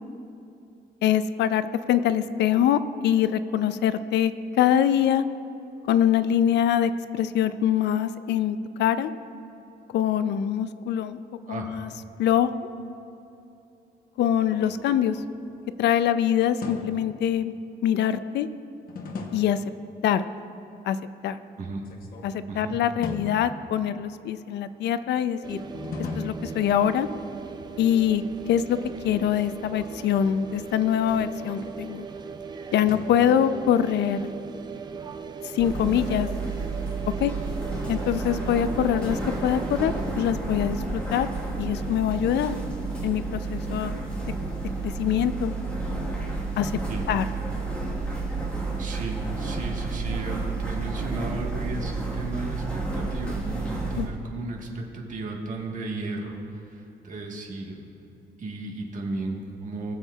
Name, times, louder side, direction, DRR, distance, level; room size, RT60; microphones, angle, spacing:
voice 1, 1.0-5.2 5.9-9.1 9.9-11.2 11.5-11.9 12.2-12.5 14.2-15.2 15.8-17.5 17.8-18.5 19.3-19.6 20.0-20.2 20.9-21.0 21.2-21.4 22.2-25.6 26.1-27.1 27.8-28.2 28.5-28.8 29.0-32.1 32.7-34.3 35.4-36.3 37.2-37.3 37.9-41.3 41.6-42.6 43.0-44.0 44.8-45.6 46.6-46.8 47.1-47.2 54.0-54.1, left 10 dB, 75° left, 13 dB, 0.4 m, -24 dB
sound 1, 14.2-16.0 16.6-17.2 18.9-19.7 21.8-22.5 23.0-24.1 25.7-27.2 29.5-32.0 32.9-33.8, left 3 dB, 55° left, 0.9 m, -39 dB
voice 2, 22.5-22.8 38.7-38.8 46.9-47.1 48.8-57.9 58.4-59.9, right 2 dB, 45° right, 0 dB, 1.3 m, -34 dB
sound 2, 25.4-40.1, right 5 dB, 25° right, 0.4 m, -39 dB
sound 3, 35.6-54.1, right 3 dB, 5° left, 1.4 m, -31 dB
20.0 x 7.2 x 2.3 m, 2.8 s
cardioid pair, 170°, 18 cm